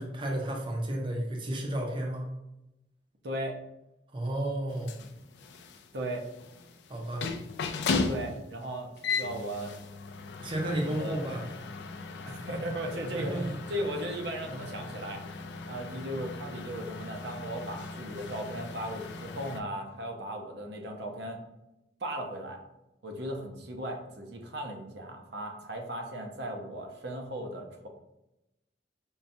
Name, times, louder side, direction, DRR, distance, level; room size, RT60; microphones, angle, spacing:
voice 1, 0.0-2.4 4.1-4.9 6.9-7.3 10.4-11.4 13.2-13.5, right 1 dB, 30° right, 0 dB, 0.6 m, -32 dB
voice 2, 3.2-3.6 5.9-6.2 8.1-9.7 10.6-11.2 12.3-13.4 13.7-15.2 15.6-21.4 22.0-22.6 23.0-27.9, right 1 dB, 65° right, 2 dB, 0.7 m, -37 dB
sound 1, 4.7-19.6, left 4 dB, 65° left, 0.3 m, -37 dB
5.3 x 2.3 x 2.6 m, 0.91 s
head